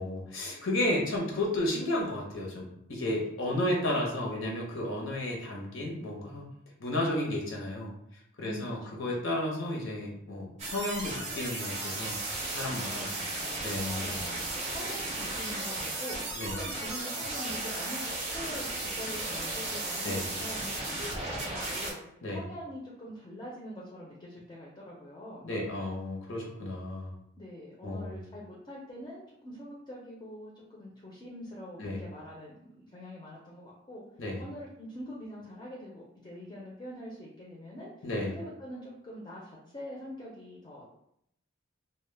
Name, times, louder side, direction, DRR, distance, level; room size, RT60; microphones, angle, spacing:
voice 1, 0.0-6.5 6.8-7.9 8.4-13.1 13.6-14.2 16.3-16.6 20.0-20.3 22.2-22.4 25.4-27.1 27.8-28.2 31.8-32.0 34.2-34.4 38.0-38.3, left 1 dB, 75° left, -1 dB, 0.7 m, -33 dB
voice 2, 8.4-9.4 12.7-13.5 13.8-22.0 22.3-25.4 27.4-34.0 34.4-37.9 38.3-40.8, equal, 25° left, -4 dB, 0.4 m, -44 dB
sound 1, 10.6-21.9, right 2 dB, 30° right, 0.5 m, -35 dB
2.1 x 2.0 x 3.2 m, 0.75 s
head